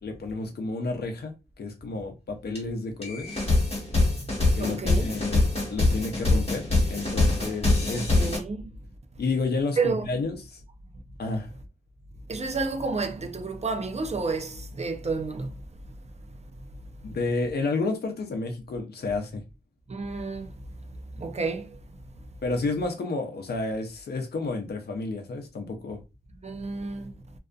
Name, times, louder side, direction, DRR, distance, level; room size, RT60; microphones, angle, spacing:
voice 1, 0.0-3.4 4.5-8.2 9.2-10.6 11.2-11.5 17.0-19.4 22.4-26.0, left 3 dB, 70° left, 0.6 m, -31 dB
sound 1, 2.5-2.6 3.0-8.4, left 2 dB, 35° left, 1.2 m, -24 dB
voice 2, 4.6-5.1 7.9-8.6 9.8-10.1 12.3-15.5 19.9-20.5 21.2-21.7 26.4-27.1, right 4 dB, 40° right, 0.4 m, -30 dB
2.6 x 2.4 x 2.3 m
wide cardioid pair, 80°, 17 cm